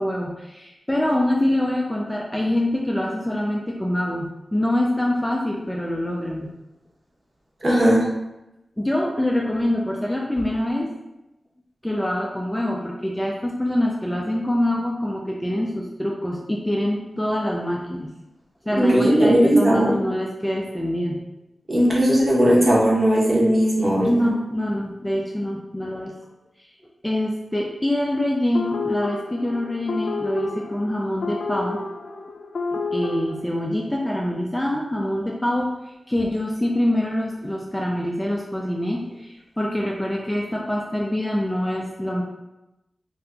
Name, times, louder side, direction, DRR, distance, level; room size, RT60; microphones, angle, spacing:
voice 1, 0.0-6.5 8.8-10.9 11.8-18.1 18.7-21.2 24.0-26.1 27.0-31.8 32.7-35.7 36.1-42.2, left 1 dB, 10° left, -2 dB, 0.3 m, -25 dB
voice 2, 7.6-8.0 18.8-19.9 21.7-24.3, equal, 35° right, -5 dB, 0.8 m, -17 dB
sound 1, 28.5-33.4, left 3 dB, 85° left, 0.3 m, -30 dB
2.7 x 2.4 x 3.3 m, 0.95 s
wide cardioid pair, 135°, 0 cm